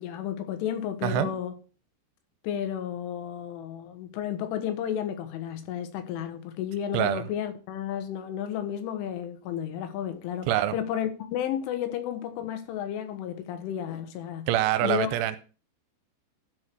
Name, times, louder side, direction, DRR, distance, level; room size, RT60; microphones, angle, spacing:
voice 1, 0.0-1.5 2.4-14.5 14.8-15.1, left 9 dB, 80° left, 3.7 m, -32 dB
voice 2, 14.5-15.4, right 12 dB, 85° right, 3.1 m, -25 dB
12.5 x 4.9 x 6.1 m
omnidirectional pair, 5.6 m